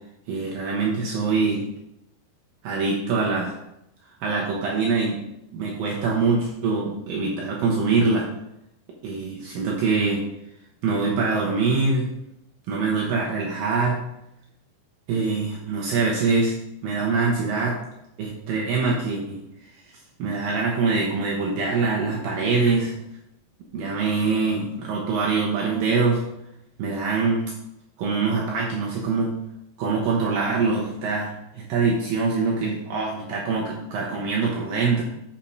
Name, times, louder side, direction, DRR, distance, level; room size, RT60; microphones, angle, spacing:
voice 1, 0.3-1.7 2.6-3.5 4.2-5.2 5.5-8.3 9.0-10.2 10.8-12.1 12.7-14.0 15.1-16.6 16.8-17.8 18.2-19.4 19.8-19.9 20.2-22.9 23.7-26.2 26.8-27.4 28.0-29.3 29.8-35.0, right 4 dB, 80° right, -2 dB, 2.0 m, -24 dB
7.3 x 4.3 x 5.3 m, 0.84 s
omnidirectional pair, 5.4 m